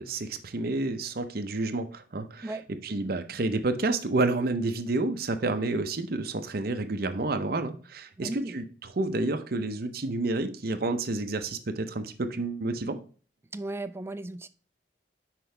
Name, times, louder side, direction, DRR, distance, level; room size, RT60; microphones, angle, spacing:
voice 1, 0.0-2.5 2.8-13.0, right 2 dB, 55° right, 0.7 m, -29 dB
voice 2, 8.2-8.5 13.5-14.5, right 2 dB, 15° right, 0.3 m, -35 dB
6.0 x 4.8 x 3.3 m
head